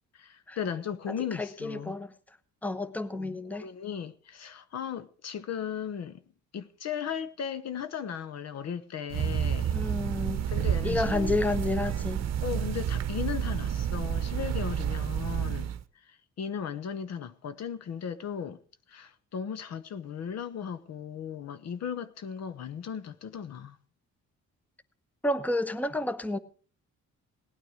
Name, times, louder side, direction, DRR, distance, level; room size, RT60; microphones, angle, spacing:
voice 1, 0.1-2.0 3.1-6.2 6.5-9.7 10.4-11.4 12.4-15.7 16.0-18.6 18.9-23.8, left 8 dB, 60° left, 0.9 m, -36 dB
voice 2, 1.3-2.1 2.6-3.7 9.7-10.4 10.8-12.2 25.2-26.4, left 2 dB, 5° left, 0.9 m, -30 dB
sound 1, 9.1-15.8, right 9 dB, 60° right, 0.8 m, -30 dB
17.5 x 9.2 x 4.9 m
cardioid pair, 90°, 30 cm